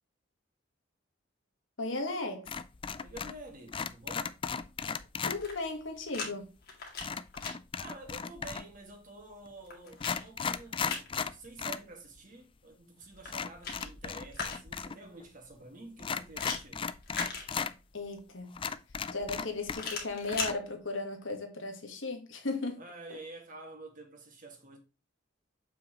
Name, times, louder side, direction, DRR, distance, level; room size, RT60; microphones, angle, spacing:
voice 1, 1.8-2.5 5.2-6.5 17.9-18.6 19.1-22.8 23.1-23.2, left 3 dB, 70° left, 1.6 m, -36 dB
sound 1, 2.5-3.4 3.7-5.4 7.0-8.8 9.5-9.6 9.9-11.9 12.2-12.3 13.3-15.0 15.2-15.3 16.0-17.7 18.2-18.3 18.6-20.0 20.3-20.5, left 6 dB, 25° left, 0.3 m, -36 dB
voice 2, 3.0-4.3 7.8-16.9 22.8-24.8, right 2 dB, 40° right, 1.9 m, -49 dB
sound 2, 5.2-6.3 6.6-7.5 9.2-11.1 13.1-14.9 16.4-17.9 19.7-20.5, left 4 dB, 50° left, 2.3 m, -40 dB
7.3 x 5.6 x 3.0 m
head